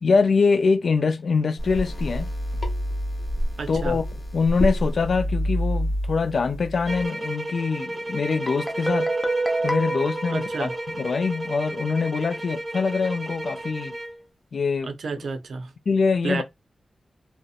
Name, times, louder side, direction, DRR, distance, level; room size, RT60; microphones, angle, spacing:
voice 1, 0.0-2.3 3.7-4.0 4.3-9.1 9.6-10.7 11.0-13.9 14.5-14.9 15.9-16.4, left 4 dB, 65° left, 0.3 m, -23 dB
sound 1, 1.6-7.1, equal, 45° left, 0.9 m, -28 dB
voice 2, 3.6-4.0 10.3-10.8 14.8-15.7 16.2-16.4, right 4 dB, 80° right, 0.5 m, -31 dB
sound 2, 6.9-14.2, right 1 dB, 25° right, 0.4 m, -33 dB
Guitar, 8.5-11.3, right 2 dB, 15° left, 0.6 m, -27 dB
2.6 x 2.0 x 2.3 m
wide cardioid pair, 105°, 0 cm